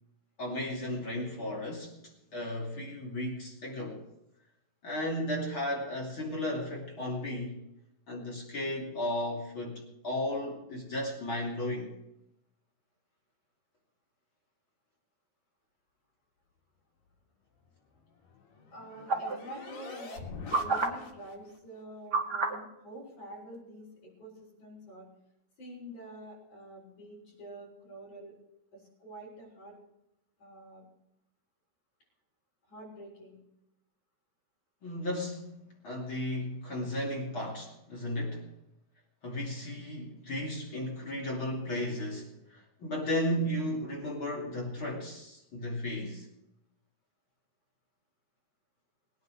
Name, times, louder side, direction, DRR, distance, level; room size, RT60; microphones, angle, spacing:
voice 1, 0.4-4.0 4.8-7.6 8.1-11.9 34.8-38.4 39.2-46.3, left 1 dB, 35° left, -2 dB, 3.3 m, -35 dB
sound 1, 17.9-21.6, left 4 dB, 75° left, 3.5 m, -45 dB
voice 2, 18.7-25.1 25.6-28.4 28.7-29.8 30.4-30.8 32.7-33.4, right 1 dB, 55° left, -8 dB, 6.7 m, -47 dB
sound 2, 19.1-19.4 20.5-20.9 22.1-22.6 23.5-23.6, right 3 dB, 35° right, 1.7 m, -28 dB
21.5 x 9.6 x 4.8 m, 0.85 s
omnidirectional pair, 4.1 m